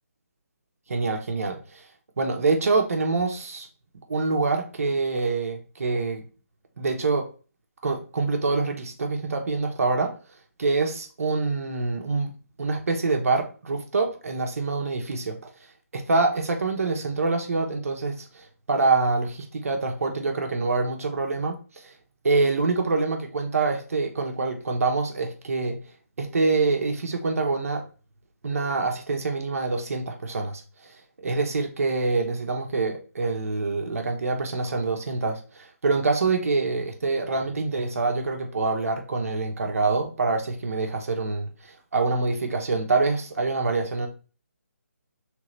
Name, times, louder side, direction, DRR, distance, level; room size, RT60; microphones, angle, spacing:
voice 1, 0.9-1.8 2.2-3.7 4.1-6.2 6.8-7.3 7.8-10.2 10.6-12.3 12.6-15.5 15.9-21.9 22.2-25.8 26.2-27.9 28.4-44.1, right 3 dB, 65° right, 1.1 m, -26 dB
4.7 x 3.4 x 3.2 m
hypercardioid pair, 160°, 8 cm